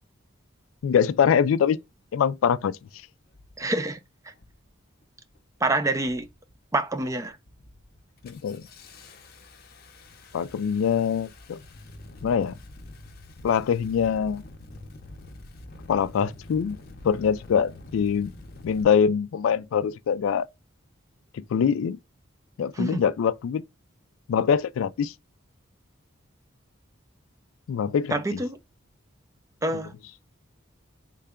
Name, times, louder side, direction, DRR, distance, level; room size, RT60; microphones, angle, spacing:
voice 1, 0.8-1.8 2.1-2.8 8.2-8.6 10.3-11.6 12.2-12.6 13.4-14.4 15.9-16.8 17.0-18.3 18.6-20.5 21.3-22.0 22.6-23.6 24.3-25.1 27.7-28.4, left 7 dB, 90° left, 0.3 m, -24 dB
Engine starting, 2.5-2.6 3.3-3.6 4.3-4.7 5.0-5.5 6.0-6.5 6.9-7.1 7.5-18.8, left 2 dB, 50° left, 0.6 m, -46 dB
voice 2, 3.6-4.0 4.2-4.3 5.6-6.3 6.7-7.4 22.7-23.0 28.1-28.6 29.6-29.9, right 2 dB, 15° right, 0.4 m, -26 dB
3.8 x 2.2 x 3.5 m
head